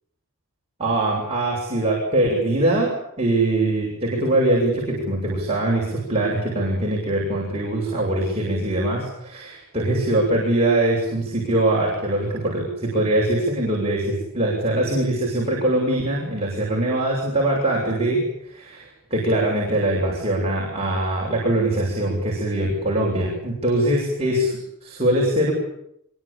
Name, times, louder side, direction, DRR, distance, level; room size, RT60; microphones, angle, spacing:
voice 1, 0.8-2.9 3.2-18.2 18.5-25.5, right 1 dB, 25° right, -3 dB, 7.5 m, -22 dB
25.0 x 24.0 x 9.0 m, 0.77 s
head